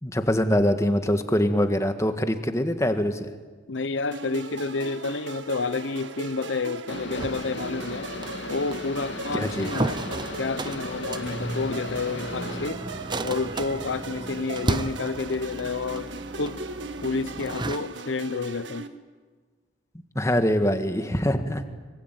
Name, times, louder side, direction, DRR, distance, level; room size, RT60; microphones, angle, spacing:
voice 1, 0.0-3.3 9.3-9.7 20.1-21.7, equal, 15° left, 1.7 m, -24 dB
voice 2, 3.7-8.1 8.5-10.0 10.4-12.8 13.2-16.1 16.4-16.6 17.0-18.9, left 4 dB, 90° left, 0.8 m, -30 dB
sound 1, 4.1-18.9, right 3 dB, 80° right, 1.6 m, -38 dB
sound 2, 6.9-12.7, left 2 dB, 75° left, 2.2 m, -36 dB
sound 3, 7.2-17.8, right 2 dB, 25° right, 0.8 m, -34 dB
26.0 x 24.0 x 9.3 m
head